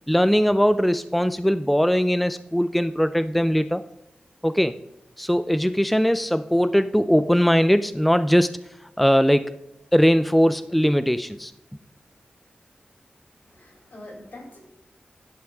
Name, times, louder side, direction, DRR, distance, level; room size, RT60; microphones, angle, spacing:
voice 1, 0.1-3.8 4.4-4.8 5.2-8.5 9.0-9.5 9.9-11.5, equal, ahead, 11 dB, 0.4 m, -20 dB
voice 2, 13.4-14.6, left 1 dB, 75° left, 0 dB, 3.9 m, -43 dB
10.5 x 5.7 x 4.7 m, 0.84 s
wide cardioid pair, 90°, 3 cm